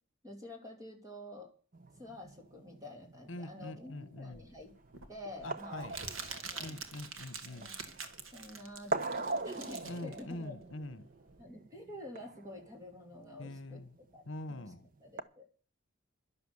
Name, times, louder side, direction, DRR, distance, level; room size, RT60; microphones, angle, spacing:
voice 1, 0.2-1.5 2.0-4.7 5.1-5.9 6.5-6.8 7.4-8.0 8.3-10.5 11.4-13.8 14.1-14.2 14.5-14.7 15.0-15.5, left 1 dB, 15° right, 3.2 m, -48 dB
sound 1, 1.7-15.2, right 2 dB, 45° right, 0.9 m, -43 dB
voice 2, 3.3-4.4 5.4-6.0 6.6-7.7 9.8-11.1 13.4-13.9 14.3-14.9, left 2 dB, 65° left, 1.2 m, -44 dB
Crumpling crinkling, 4.3-11.4, right 5 dB, 75° right, 1.8 m, -46 dB
11.5 x 11.5 x 7.2 m
head